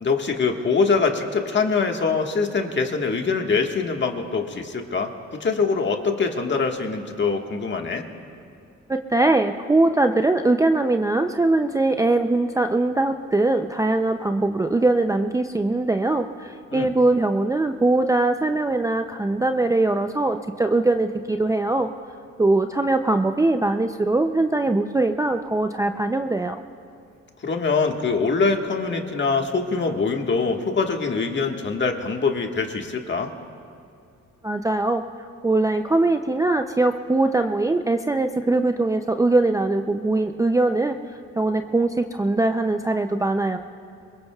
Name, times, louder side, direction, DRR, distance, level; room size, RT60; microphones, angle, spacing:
voice 1, 0.0-8.0 16.7-16.9 27.4-33.3, left 4 dB, 40° left, 3 dB, 1.6 m, -23 dB
voice 2, 8.9-21.9 22.4-26.6 34.4-35.0 35.4-41.0 41.3-43.6, right 2 dB, 10° right, 7 dB, 0.5 m, -21 dB
25.0 x 22.0 x 2.3 m, 2.4 s
cardioid pair, 90°, 30 cm